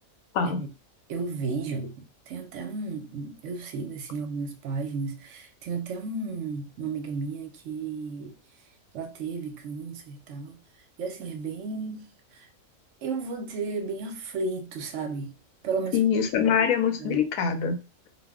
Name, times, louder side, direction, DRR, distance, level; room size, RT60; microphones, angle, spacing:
voice 1, 1.1-8.4 8.9-10.6 11.0-12.5 13.0-15.3 15.6-16.0 17.0-17.2, right 4 dB, 70° right, 0.8 m, -33 dB
voice 2, 15.9-17.8, left 7 dB, 85° left, 1.0 m, -24 dB
2.4 x 2.0 x 3.4 m
omnidirectional pair, 1.4 m